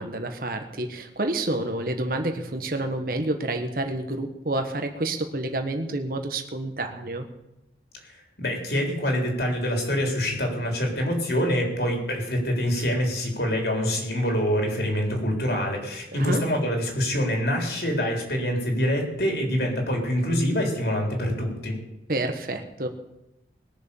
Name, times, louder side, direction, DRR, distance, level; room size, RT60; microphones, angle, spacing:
voice 1, 0.0-7.3 16.2-16.4 22.1-22.9, right 2 dB, 50° right, 5 dB, 1.3 m, -29 dB
voice 2, 8.4-21.8, equal, 65° left, 1 dB, 3.8 m, -25 dB
20.5 x 6.9 x 7.1 m, 0.90 s
head